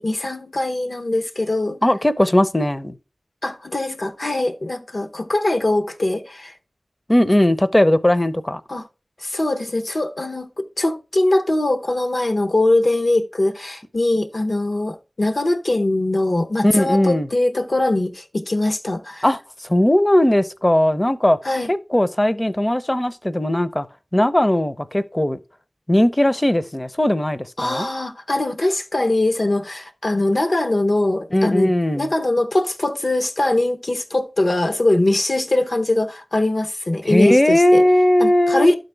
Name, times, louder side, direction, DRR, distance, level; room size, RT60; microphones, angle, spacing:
voice 1, 0.0-1.8 3.4-6.5 8.7-8.9 9.2-19.2 21.4-21.7 27.6-37.8 38.2-38.8, left 2 dB, 75° left, 0.8 m, -21 dB
voice 2, 1.8-2.9 7.1-8.6 16.6-17.3 19.2-21.4 21.7-23.9 24.1-25.4 25.9-27.9 31.3-32.1 37.1-38.7, left 1 dB, 25° left, 0.6 m, -18 dB
11.5 x 4.0 x 3.3 m
wide cardioid pair, 45°, 0 cm